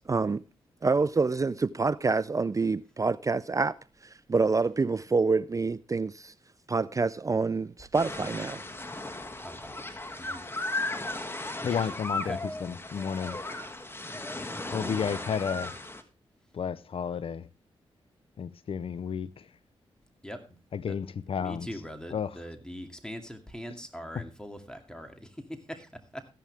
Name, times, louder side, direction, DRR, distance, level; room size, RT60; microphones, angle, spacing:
voice 1, 0.1-0.4 0.8-3.8 4.3-6.3 6.7-8.6, right 4 dB, 35° right, 0.5 m, -27 dB
sound 1, 7.9-16.0, left 2 dB, 25° left, 2.0 m, -36 dB
voice 2, 9.4-9.7 10.2-10.4 11.2-11.5 12.3-12.4 14.7-15.3 20.2-20.4 20.9-21.0 21.4-26.3, equal, 5° left, 2.5 m, -42 dB
voice 3, 11.6-13.4 14.7-15.8 16.5-17.5 18.4-19.5 20.7-21.7 22.1-22.4 24.1-24.2, left 7 dB, 65° left, 0.6 m, -32 dB
14.5 x 11.0 x 3.4 m
cardioid pair, 55°, 10 cm